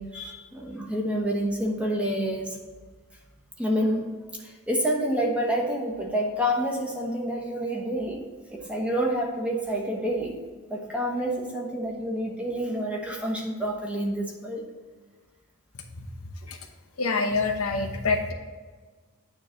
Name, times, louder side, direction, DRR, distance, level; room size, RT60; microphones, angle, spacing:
voice 1, 0.0-2.6 3.6-4.1 4.4-8.2 8.5-10.4 10.7-14.6, equal, 5° right, -1 dB, 1.0 m, -28 dB
voice 2, 17.0-18.3, left 3 dB, 70° left, 3 dB, 0.9 m, -26 dB
9.1 x 3.2 x 6.3 m, 1.4 s
head